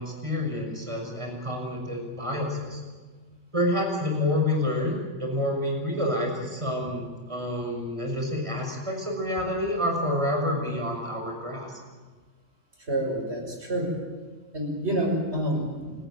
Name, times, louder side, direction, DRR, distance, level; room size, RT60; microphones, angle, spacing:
voice 1, 0.0-2.8 3.5-11.7, left 1 dB, 20° right, 1 dB, 6.3 m, -28 dB
voice 2, 12.9-13.9 14.5-15.9, right 1 dB, 50° right, 2 dB, 6.2 m, -28 dB
30.0 x 15.0 x 9.2 m, 1.4 s
omnidirectional pair, 1.4 m